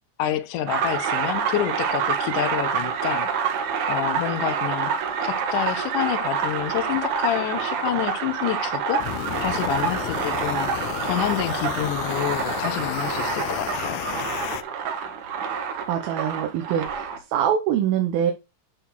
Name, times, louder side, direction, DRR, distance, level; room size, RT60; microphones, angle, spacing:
voice 1, 0.2-3.3 3.9-4.9 5.2-9.1 9.4-10.7 11.0-14.0, left 12 dB, 75° left, 2.1 m, -28 dB
sound 1, 0.7-17.2, right 6 dB, 65° right, 2.4 m, -27 dB
sound 2, 9.0-14.6, left 14 dB, 90° left, 1.7 m, -32 dB
voice 2, 15.9-18.3, right 9 dB, 85° right, 2.7 m, -24 dB
11.5 x 4.1 x 4.5 m
omnidirectional pair, 4.1 m